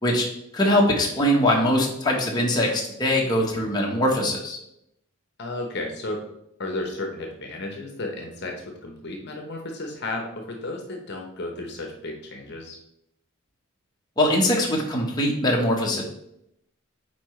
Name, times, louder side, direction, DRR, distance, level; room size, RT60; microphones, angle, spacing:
voice 1, 0.5-4.6 14.2-16.0, left 1 dB, 20° left, -2 dB, 1.2 m, -22 dB
voice 2, 5.4-6.2 6.6-12.8, left 2 dB, 50° left, 2 dB, 1.0 m, -33 dB
8.5 x 4.7 x 3.2 m, 0.78 s
head